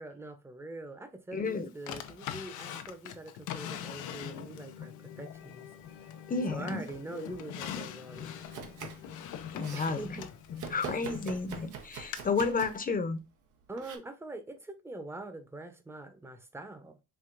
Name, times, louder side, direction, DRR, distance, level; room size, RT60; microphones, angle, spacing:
voice 1, 0.0-5.7 6.5-8.4 9.7-10.3 13.7-17.0, right 2 dB, 10° right, 0.7 m, -44 dB
voice 2, 1.3-1.7 6.3-6.8 9.5-10.2 10.7-13.2, left 4 dB, 30° left, 0.7 m, -31 dB
Drawer open or close, 1.9-4.8 5.3-6.3 6.7-11.4 12.1-12.2, left 10 dB, 90° left, 0.6 m, -42 dB
sound 1, 4.0-11.5, left 8 dB, 55° left, 0.9 m, -47 dB
Domestic sounds home sounds, 8.4-9.1 9.4-10.0 10.6-12.9 13.8-14.0, right 7 dB, 85° right, 0.9 m, -43 dB
4.7 x 2.8 x 2.5 m
cardioid pair, 90°, 30 cm